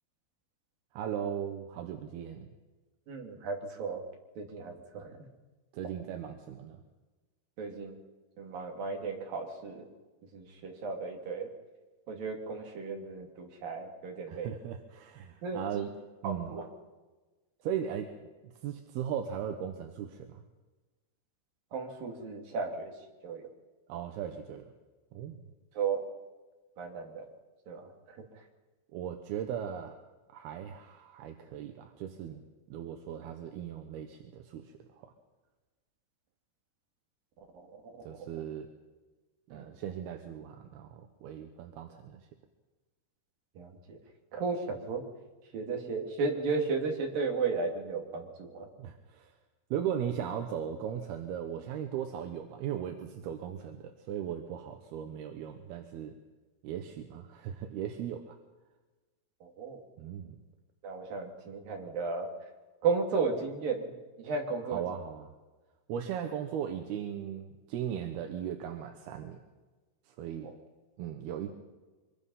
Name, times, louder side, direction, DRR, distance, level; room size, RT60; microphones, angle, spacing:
voice 1, 0.9-2.5 5.7-6.8 14.3-15.9 16.2-16.6 17.6-20.4 23.9-24.7 25.1-25.4 28.9-30.0 30.3-32.4 32.7-35.1 38.0-38.7 39.5-42.2 48.8-49.3 49.7-56.1 56.6-58.4 60.0-60.4 64.7-65.3 65.9-69.4 70.1-70.5 71.0-71.5, right 9 dB, 70° right, 5 dB, 2.7 m, -38 dB
voice 2, 3.1-4.0 4.4-5.2 7.6-8.0 8.4-9.9 10.3-11.5 12.1-14.6 15.4-15.9 16.2-16.6 21.7-22.9 23.2-23.4 25.8-26.0 26.8-27.3 27.7-27.9 37.8-37.9 38.2-38.3 39.5-39.7 43.6-44.0 44.3-45.0 45.5-48.7 59.4-59.8 60.8-62.3 62.8-63.9 64.2-64.8 70.4-70.5, right 4 dB, 50° right, 2 dB, 4.0 m, -34 dB
25.0 x 22.0 x 5.6 m, 1.2 s
omnidirectional pair, 5.4 m